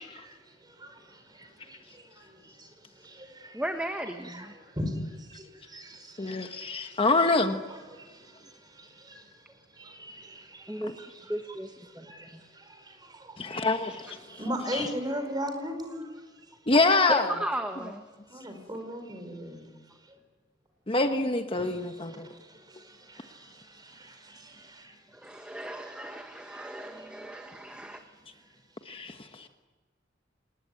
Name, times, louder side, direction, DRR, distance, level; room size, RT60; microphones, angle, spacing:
voice 1, 0.0-3.6 4.2-7.0 7.7-9.3 9.8-11.4 11.9-13.4 14.2-16.1 18.3-19.8 20.1-20.2 21.5-25.0 25.6-25.9 26.5-26.7 26.9-27.1, equal, 25° right, 4.8 m, -40 dB
voice 2, 3.5-4.5 10.7-10.9 11.3-12.4 14.8-14.9 17.1-18.0 25.1-28.0, right 1 dB, 5° right, 1.5 m, -36 dB
voice 3, 6.2-7.6 13.4-14.1 14.7-14.9 16.7-17.3 20.9-22.3 28.9-29.5, left 3 dB, 30° left, 1.2 m, -26 dB
27.0 x 20.0 x 9.7 m
head